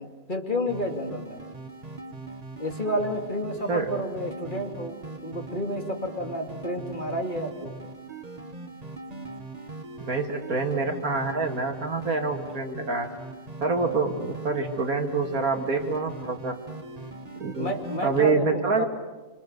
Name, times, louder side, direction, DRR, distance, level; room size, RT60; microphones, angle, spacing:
voice 1, 0.0-1.4 2.6-5.0 5.2-7.7 17.6-18.8, equal, 30° left, 2 dB, 2.8 m, -30 dB
sound 1, 0.7-18.3, right 3 dB, 25° right, 1.7 m, -41 dB
voice 2, 10.0-13.1 13.6-16.5 17.4-18.8, right 4 dB, 65° right, 4 dB, 2.5 m, -26 dB
27.5 x 27.0 x 6.7 m, 1.2 s
omnidirectional pair, 1.6 m